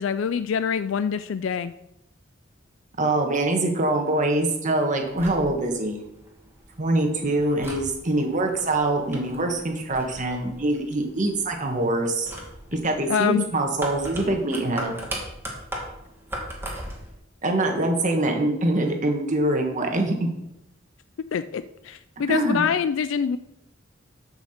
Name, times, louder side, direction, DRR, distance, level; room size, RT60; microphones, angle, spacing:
voice 1, 0.0-1.7 13.1-13.5 21.3-23.4, left 7 dB, 70° left, 13 dB, 0.4 m, -25 dB
voice 2, 3.0-6.0 6.8-12.3 12.7-14.9 17.4-20.3 22.3-22.6, right 2 dB, 40° right, 3 dB, 1.5 m, -24 dB
sound 1, 5.0-17.1, right 1 dB, 10° right, 2.1 m, -39 dB
13.0 x 5.8 x 4.4 m, 0.85 s
head